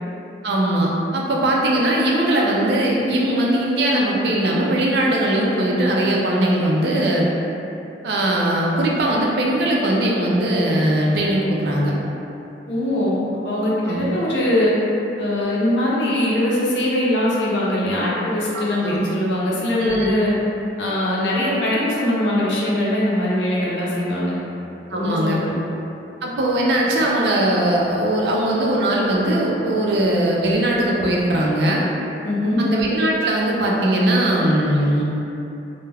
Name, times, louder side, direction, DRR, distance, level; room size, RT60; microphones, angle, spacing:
voice 1, 0.4-7.3 8.0-11.9 13.9-14.1 18.5-19.0 19.8-20.1 24.9-25.4 26.2-31.8 32.6-35.0, right 1 dB, 65° right, -3 dB, 0.4 m, -20 dB
voice 2, 12.7-14.7 15.2-20.3 20.8-24.4 24.9-25.4 32.2-32.6, left 1 dB, 75° left, -6 dB, 0.6 m, -21 dB
2.2 x 2.1 x 3.3 m, 2.9 s
head